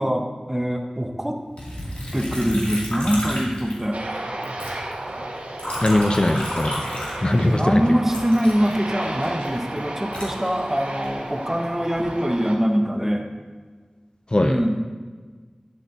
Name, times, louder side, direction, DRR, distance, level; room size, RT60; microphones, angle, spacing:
voice 1, 0.0-1.4 2.1-4.0 7.4-13.3 14.4-14.8, equal, 15° right, 3 dB, 0.9 m, -23 dB
Liquid, 1.6-4.2 4.4-7.6 8.1-11.1 11.7-12.2, equal, 60° left, 2.5 m, -32 dB
Aircraft, 3.9-12.6, right 1 dB, 85° right, 1.0 m, -33 dB
voice 2, 5.8-7.8 14.3-14.6, left 1 dB, 40° left, 7 dB, 0.5 m, -21 dB
9.7 x 8.1 x 2.7 m, 1.5 s
wide cardioid pair, 45°, 2 cm